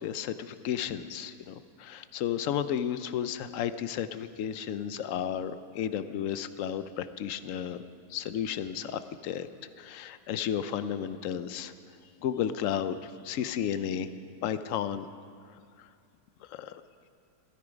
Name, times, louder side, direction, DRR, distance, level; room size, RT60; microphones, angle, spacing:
voice 1, 0.0-7.8 8.1-9.5 9.8-11.7 12.2-14.1 14.4-15.1 16.5-16.8, left 9 dB, 65° left, 12 dB, 0.8 m, -33 dB
16.5 x 13.5 x 5.1 m, 2.3 s
omnidirectional pair, 1.8 m